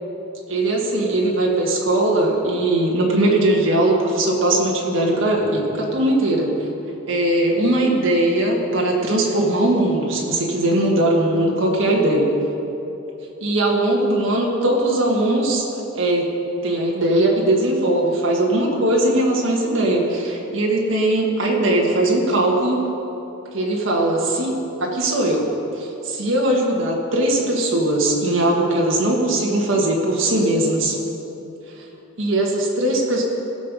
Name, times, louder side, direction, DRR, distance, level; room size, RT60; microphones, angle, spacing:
voice 1, 0.5-6.5 7.1-12.3 13.4-15.7 15.9-16.3 16.6-22.8 23.5-25.5 25.8-31.0 32.2-33.2, right 1 dB, 65° right, -2 dB, 1.7 m, -20 dB
16.5 x 6.7 x 5.3 m, 3.0 s
head